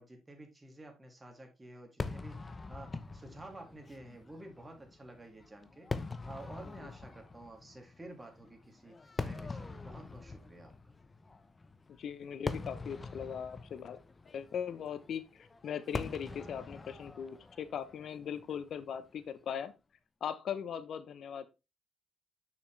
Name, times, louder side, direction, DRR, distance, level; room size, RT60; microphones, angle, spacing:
voice 1, 0.0-2.4 2.7-5.9 6.3-10.7, right 1 dB, 20° right, 3 dB, 2.6 m, -51 dB
Fireworks, 2.0-19.3, left 3 dB, 30° left, 0.8 m, -44 dB
voice 2, 12.0-14.0 14.3-19.7 20.2-21.5, left 8 dB, 65° left, 13 dB, 0.7 m, -39 dB
6.5 x 5.9 x 3.3 m, 0.26 s
supercardioid pair, 55°, 0 cm